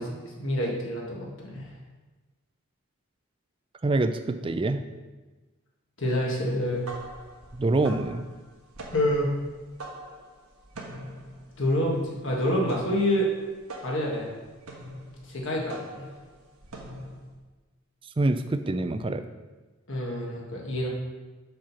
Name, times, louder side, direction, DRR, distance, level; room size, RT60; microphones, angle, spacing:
voice 1, 0.0-1.7 6.0-6.8 8.9-9.3 11.6-13.3 13.8-14.3 15.2-16.1 19.9-20.9, left 1 dB, 60° left, -2 dB, 1.4 m, -27 dB
voice 2, 3.8-4.8 7.5-8.3 18.2-19.2, right 2 dB, 25° right, 9 dB, 0.3 m, -25 dB
sound 1, 6.6-17.4, right 1 dB, 80° right, 1.3 m, -43 dB
7.4 x 4.5 x 5.7 m, 1.2 s
head